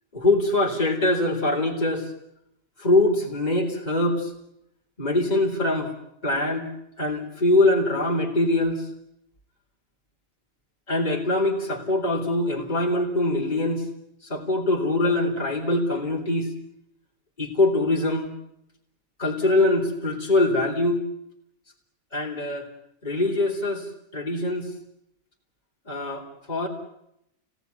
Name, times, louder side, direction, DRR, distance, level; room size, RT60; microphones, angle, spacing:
voice 1, 0.1-2.1 2.8-4.3 5.0-5.9 6.2-6.7 7.0-8.9 10.9-13.8 14.2-16.5 17.4-18.3 19.2-21.0 22.1-22.6 23.0-24.7 25.9-26.7, left 2 dB, 30° left, 1 dB, 3.9 m, -23 dB
29.5 x 19.0 x 9.6 m, 0.81 s
omnidirectional pair, 1.4 m